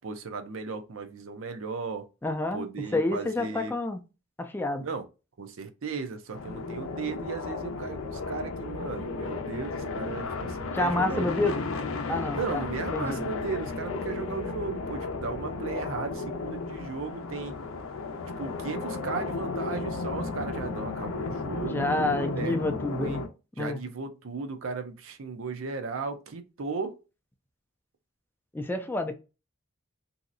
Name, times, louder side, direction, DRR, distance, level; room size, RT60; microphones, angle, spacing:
voice 1, 0.0-2.1 2.5-3.7 4.8-5.0 5.4-11.8 12.3-17.6 18.4-23.2 23.6-27.0, right 4 dB, 75° right, 0.5 m, -36 dB
voice 2, 2.2-2.6 2.9-4.0 4.4-4.8 10.7-11.6 12.1-12.6 12.9-13.2 21.6-23.2 23.6-23.8 28.5-29.2, left 2 dB, 10° left, 0.3 m, -28 dB
sound 1, 6.3-23.3, left 3 dB, 85° left, 0.5 m, -34 dB
3.0 x 2.7 x 2.5 m
head